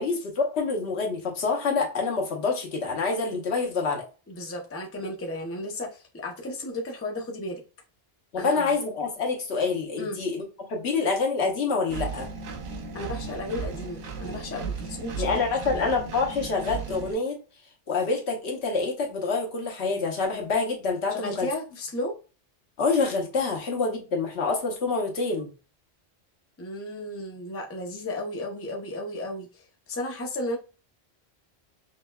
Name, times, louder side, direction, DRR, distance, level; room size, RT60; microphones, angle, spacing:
voice 1, 0.0-4.0 8.3-10.4 10.7-12.3 15.2-17.4 17.9-21.5 22.8-25.5, left 4 dB, 80° left, 1 dB, 1.1 m, -27 dB
voice 2, 4.3-7.6 8.4-8.8 10.0-10.2 12.9-15.3 15.7-15.9 21.1-22.1 26.6-30.6, left 1 dB, 15° left, 1 dB, 0.5 m, -34 dB
Engine, 11.9-17.1, right 5 dB, 75° right, 0.9 m, -35 dB
5.3 x 2.1 x 2.2 m, 0.33 s
omnidirectional pair, 1.1 m